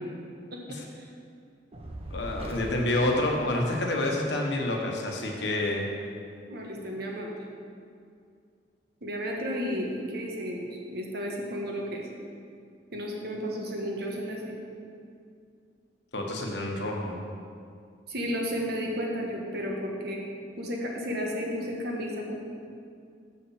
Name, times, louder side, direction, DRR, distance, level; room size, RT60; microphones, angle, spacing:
voice 1, 0.5-1.1 6.5-7.3 9.0-12.1 12.9-14.6 18.1-20.2 20.6-22.4, equal, 60° right, -1 dB, 1.3 m, -33 dB
Fire, 1.7-4.2, right 1 dB, 35° right, 0.9 m, -41 dB
voice 2, 2.1-5.8 16.1-17.2, left 1 dB, 65° left, 0 dB, 1.2 m, -28 dB
7.1 x 5.6 x 6.5 m, 2.3 s
head